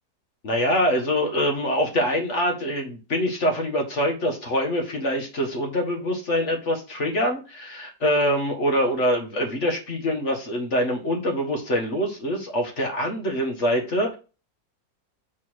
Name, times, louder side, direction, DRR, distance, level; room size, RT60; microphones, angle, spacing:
voice 1, 0.4-14.2, equal, 45° left, 3 dB, 1.8 m, -24 dB
6.4 x 4.2 x 6.2 m, 0.33 s
omnidirectional pair, 1.9 m